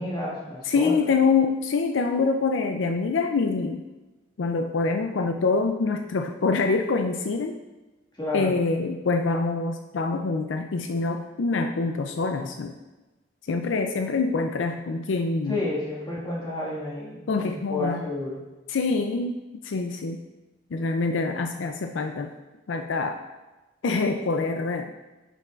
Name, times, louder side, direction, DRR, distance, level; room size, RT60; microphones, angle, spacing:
voice 1, 0.0-1.0 8.1-8.5 15.5-18.4, left 2 dB, 25° left, -6 dB, 1.8 m, -31 dB
voice 2, 0.7-3.8 4.4-7.6 8.3-12.7 13.5-15.6 17.3-18.0 18.7-20.2 20.7-22.3 22.7-23.2 23.8-24.9, left 4 dB, 80° left, 5 dB, 0.4 m, -25 dB
9.4 x 5.6 x 2.4 m, 1.1 s
head